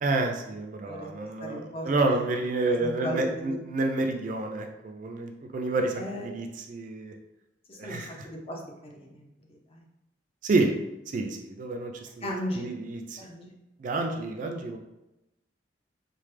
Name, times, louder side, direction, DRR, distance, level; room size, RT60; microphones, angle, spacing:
voice 1, 0.0-7.1 7.8-8.1 10.4-10.7 11.1-11.9 12.2-12.3 12.6-13.2 13.8-14.8, right 2 dB, 45° right, 4 dB, 0.3 m, -29 dB
voice 2, 1.4-1.9 2.8-3.6 6.0-6.3 7.7-9.8 12.2-12.7 13.2-13.5, equal, 35° left, 0 dB, 0.5 m, -36 dB
3.1 x 2.1 x 3.2 m, 0.93 s
head